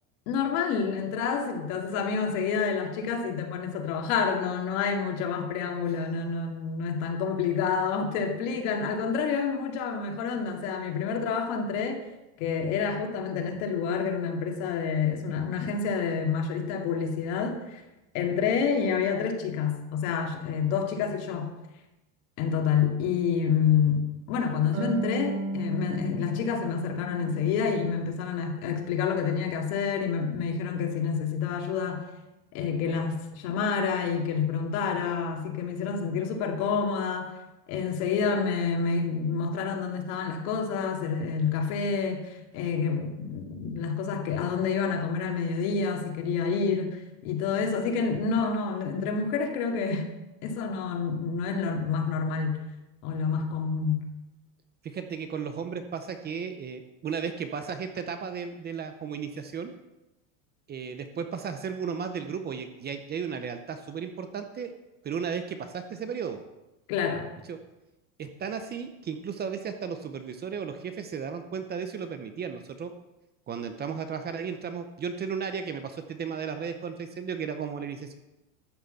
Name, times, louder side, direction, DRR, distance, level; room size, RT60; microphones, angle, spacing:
voice 1, 0.3-12.0 12.4-17.8 18.1-21.5 22.4-32.1 32.5-37.3 37.7-50.1 50.4-52.6 53.0-54.1 66.9-67.3, left 6 dB, 65° left, 3 dB, 2.4 m, -28 dB
Harp, 24.7-28.1 28.5-29.5, right 1 dB, 90° right, 5.8 m, -36 dB
voice 2, 54.8-59.7 60.7-64.7 65.0-66.4 67.5-67.6 68.2-72.9 73.5-78.1, right 6 dB, 20° right, 8 dB, 0.7 m, -34 dB
12.5 x 6.5 x 7.8 m, 0.98 s
supercardioid pair, 155°, 45 cm